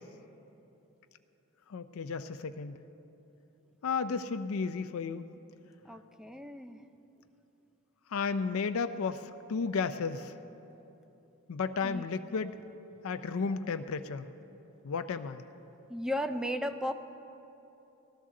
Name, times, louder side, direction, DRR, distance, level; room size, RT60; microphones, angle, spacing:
voice 1, 1.7-2.8 3.8-5.3 8.1-10.3 11.5-12.5 13.0-14.3 14.8-15.4, left 5 dB, 70° left, 9 dB, 0.4 m, -33 dB
voice 2, 5.9-6.8 11.8-12.0 15.9-16.9, equal, 5° right, 9 dB, 0.4 m, -35 dB
19.0 x 13.5 x 3.7 m, 3.0 s
head